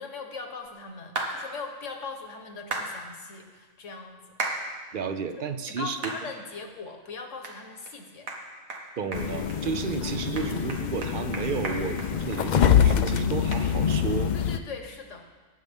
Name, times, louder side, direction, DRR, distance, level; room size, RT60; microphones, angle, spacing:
voice 1, 0.0-4.2 5.6-8.3 14.3-15.3, left 4 dB, 65° left, 4 dB, 1.6 m, -40 dB
sound 1, 1.2-1.3 2.7-2.9 4.4-4.6 5.1-5.2 6.0-6.2 6.7-6.8 7.4-7.6 7.9-8.0 8.3-8.4 8.7-8.8 9.1-9.6 9.9-10.0 10.4-12.7 13.0-13.1 13.5-13.6, right 3 dB, 90° right, 1.9 m, -33 dB
voice 2, 4.9-6.0 9.0-14.3, right 6 dB, 50° right, 10 dB, 0.7 m, -32 dB
sound 2, 9.1-14.6, left 8 dB, 85° left, 0.4 m, -25 dB
20.0 x 8.0 x 3.6 m, 1.4 s
omnidirectional pair, 1.4 m